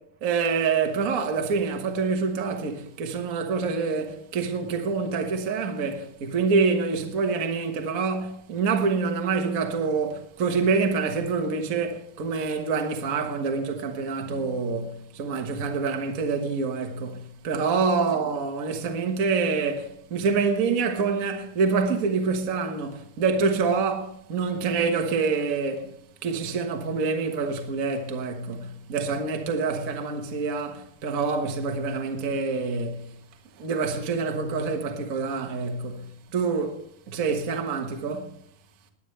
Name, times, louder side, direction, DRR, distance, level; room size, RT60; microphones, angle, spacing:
voice 1, 0.2-25.9 26.2-33.1 33.6-38.3, right 4 dB, 65° right, 0.8 m, -26 dB
21.0 x 9.9 x 3.3 m
omnidirectional pair, 3.8 m